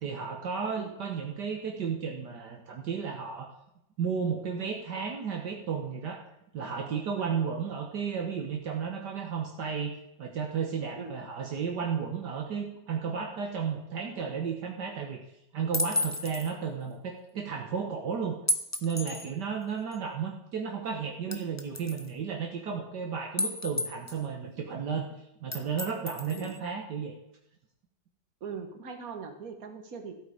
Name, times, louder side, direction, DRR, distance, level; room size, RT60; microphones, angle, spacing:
voice 1, 0.0-3.5 4.0-6.2 6.5-9.9 10.2-15.2 15.5-18.4 18.8-25.1 25.4-27.1, right 6 dB, 65° right, 1 dB, 1.7 m, -33 dB
sound 1, 15.7-16.5 18.5-19.3 19.9-20.0 21.3-22.1 23.4-24.2 25.5-26.6, left 2 dB, 20° left, 0.4 m, -32 dB
voice 2, 28.4-30.1, right 6 dB, 50° right, 5 dB, 1.9 m, -40 dB
14.5 x 8.3 x 5.0 m, 0.84 s
omnidirectional pair, 2.0 m